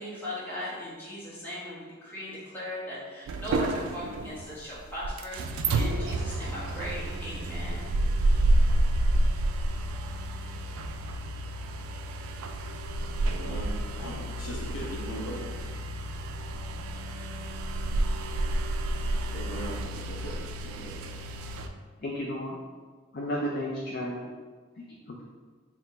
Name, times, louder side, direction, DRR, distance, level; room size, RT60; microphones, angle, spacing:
voice 1, 0.0-7.9, left 1 dB, 10° left, -9 dB, 1.0 m, -38 dB
sound 1, 3.3-21.7, right 1 dB, 85° right, 0.3 m, -29 dB
voice 2, 13.2-15.4 19.3-21.0, right 1 dB, 90° left, -2 dB, 0.8 m, -40 dB
voice 3, 22.0-22.6 23.1-24.3 25.1-25.2, equal, 45° left, -3 dB, 0.4 m, -32 dB
4.1 x 2.1 x 4.0 m, 1.5 s
head